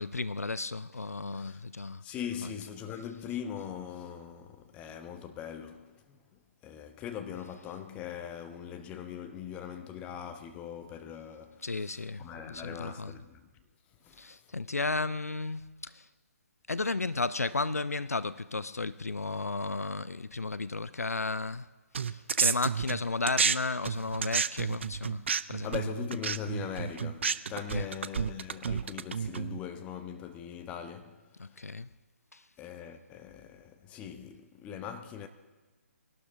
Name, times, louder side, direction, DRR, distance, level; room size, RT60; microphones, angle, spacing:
voice 1, 0.0-2.0 2.4-2.5 11.6-13.2 14.2-16.1 16.7-21.7 22.0-25.8 27.5-27.9 31.4-31.9 32.3-32.4, left 3 dB, 75° left, 0.4 m, -34 dB
voice 2, 2.0-13.5 14.0-14.3 25.6-31.6 32.6-35.3, left 8 dB, 15° left, 0.8 m, -41 dB
sound 1, 21.9-23.6 23.8-29.6, right 6 dB, 50° right, 0.5 m, -30 dB
22.5 x 12.0 x 3.7 m
figure-of-eight pair, 135°, 8 cm